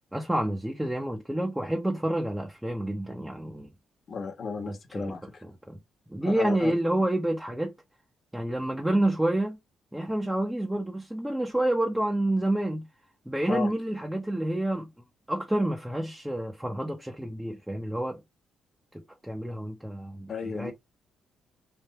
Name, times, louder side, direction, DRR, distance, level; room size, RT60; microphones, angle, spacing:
voice 1, 0.1-3.7 4.6-5.1 5.4-5.8 6.1-7.7 8.3-9.6 9.9-12.9 13.3-14.9 15.3-18.2 18.9-20.7, right 1 dB, 5° right, 0.8 m, -29 dB
voice 2, 4.1-5.4 6.2-6.7 13.5-13.7 20.3-20.7, left 5 dB, 45° left, 1.3 m, -34 dB
3.4 x 2.4 x 4.2 m
cardioid pair, 90°, 0 cm